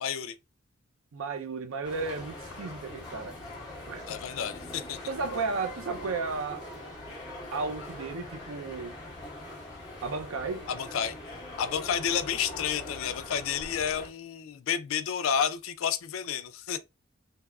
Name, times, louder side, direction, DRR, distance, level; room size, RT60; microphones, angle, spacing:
voice 1, 0.0-0.3 4.1-5.0 10.7-11.1 11.6-16.8, left 8 dB, 70° left, 0.4 m, -30 dB
voice 2, 1.1-3.3 3.9-4.2 5.1-6.7 7.5-8.9 10.0-10.7, right 4 dB, 75° right, 0.5 m, -34 dB
sound 1, 1.8-14.1, left 2 dB, 15° left, 1.0 m, -42 dB
3.4 x 2.0 x 2.2 m
head